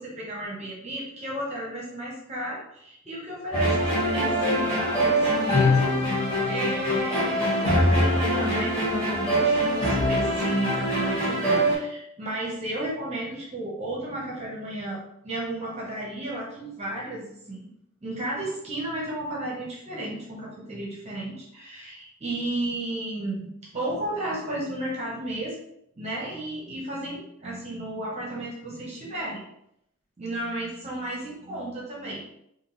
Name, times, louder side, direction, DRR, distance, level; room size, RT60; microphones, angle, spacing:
voice 1, 0.0-17.6 18.0-25.5 26.0-29.4 30.2-32.2, right 1 dB, 30° right, -4 dB, 0.9 m, -33 dB
sound 1, 3.5-11.7, equal, 25° left, 1.5 m, -23 dB
3.7 x 2.6 x 3.9 m, 0.76 s
head